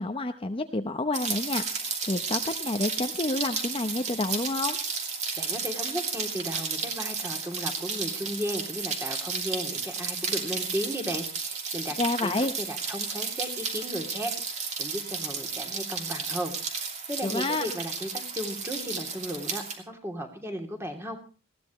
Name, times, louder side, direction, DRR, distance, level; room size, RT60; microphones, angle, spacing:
voice 1, 0.0-4.8 12.0-12.5 17.2-17.6, left 2 dB, 25° left, 7 dB, 0.8 m, -29 dB
Rain, 1.1-19.8, right 5 dB, 35° right, 2.8 m, -33 dB
voice 2, 5.4-12.3 12.6-21.2, equal, 10° right, 3 dB, 2.8 m, -35 dB
20.0 x 16.5 x 3.1 m, 0.35 s
head